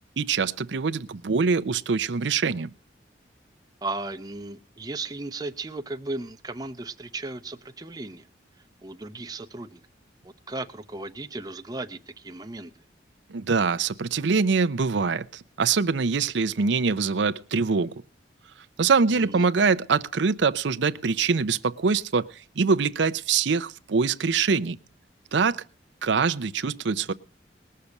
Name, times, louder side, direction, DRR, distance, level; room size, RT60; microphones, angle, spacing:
voice 1, 0.2-2.7 13.3-17.9 18.8-22.3 22.6-24.8 25.3-25.6 26.0-27.1, right 5 dB, 75° right, 0.6 m, -24 dB
voice 2, 3.8-8.3 8.8-9.8 10.2-12.7 19.1-19.5, right 2 dB, 20° right, 0.6 m, -36 dB
19.5 x 6.7 x 7.0 m
head